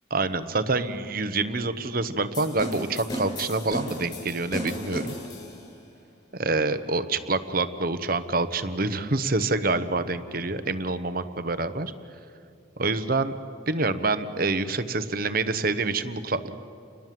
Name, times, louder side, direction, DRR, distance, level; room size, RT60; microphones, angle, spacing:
voice 1, 0.1-5.2 6.3-11.9 12.8-13.3 13.7-16.6, right 3 dB, 45° right, 11 dB, 1.1 m, -27 dB
sound 1, 2.3-5.8, equal, 25° left, 7.8 m, -35 dB
30.0 x 22.0 x 7.7 m, 2.4 s
head